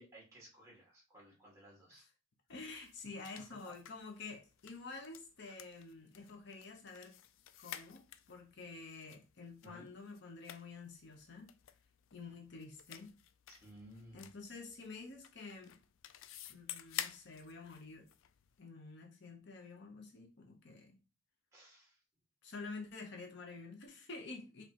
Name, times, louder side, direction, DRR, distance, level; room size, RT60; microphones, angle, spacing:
voice 1, 0.0-2.1 3.6-3.7 5.4-5.6 9.6-9.9 13.5-14.3 21.5-22.0, equal, 15° right, 2.0 m, -57 dB
sound 1, 2.5-18.6, left 11 dB, 75° left, 0.4 m, -52 dB
voice 2, 2.5-7.1 7.6-11.5 12.1-13.2 14.1-15.8 16.5-18.1 18.6-21.0 22.4-24.6, left 3 dB, 60° left, 0.8 m, -49 dB
5.0 x 3.2 x 3.0 m
head